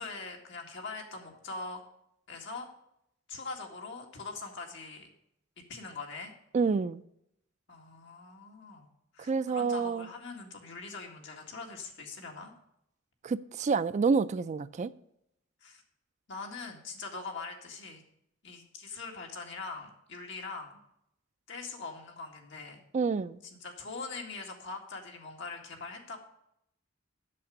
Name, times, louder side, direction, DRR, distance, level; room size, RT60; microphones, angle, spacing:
voice 1, 0.0-1.8 2.3-2.7 3.3-5.1 5.7-6.3 7.7-8.9 9.1-12.5 15.6-15.8 16.3-18.0 18.4-20.7 21.5-22.8 23.4-26.2, left 4 dB, 65° left, 2.0 m, -42 dB
voice 2, 6.5-7.0 9.2-10.1 13.2-14.9 22.9-23.4, right 5 dB, 35° right, 0.3 m, -28 dB
8.5 x 6.6 x 6.4 m
head